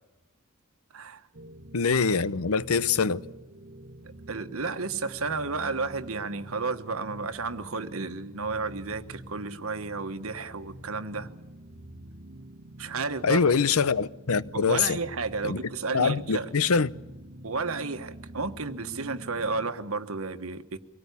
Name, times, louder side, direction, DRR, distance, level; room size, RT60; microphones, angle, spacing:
voice 1, 0.9-1.2 4.3-11.3 12.8-13.4 14.5-16.5 17.4-20.8, right 4 dB, 80° right, 1.3 m, -32 dB
sound 1, 1.3-19.7, right 1 dB, 65° right, 1.4 m, -46 dB
voice 2, 1.7-3.2 13.2-15.0 15.4-16.9, left 5 dB, 90° left, 0.8 m, -24 dB
24.5 x 18.0 x 8.3 m
head